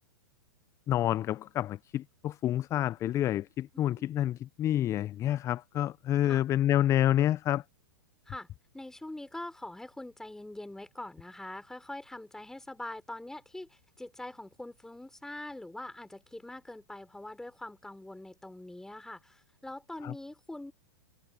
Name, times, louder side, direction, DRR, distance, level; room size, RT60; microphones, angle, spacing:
voice 1, 0.9-7.6 20.0-20.1, left 12 dB, 25° left, 0.5 m, -28 dB
voice 2, 3.7-4.4 6.2-6.4 8.3-8.5 8.7-20.7, left 1 dB, 5° left, 4.6 m, -44 dB
hypercardioid pair, 110°, 11 cm